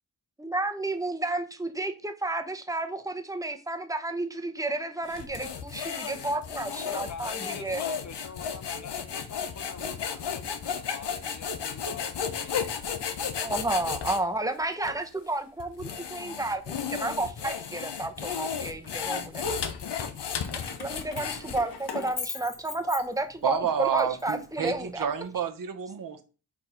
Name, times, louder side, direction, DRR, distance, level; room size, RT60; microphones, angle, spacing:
voice 1, 0.4-7.8 13.4-19.4 20.8-25.1, right 2 dB, 10° right, 0.7 m, -31 dB
sound 1, 5.1-14.2 14.8-15.0 15.6-21.9, left 7 dB, 80° left, 0.8 m, -34 dB
voice 2, 6.9-12.9, left 7 dB, 45° left, 0.6 m, -44 dB
Keys jangling, 20.4-23.5 24.0-25.3, left 5 dB, 60° left, 1.1 m, -40 dB
voice 3, 23.4-26.2, right 8 dB, 55° right, 0.7 m, -29 dB
4.9 x 4.2 x 5.0 m
wide cardioid pair, 115°, 41 cm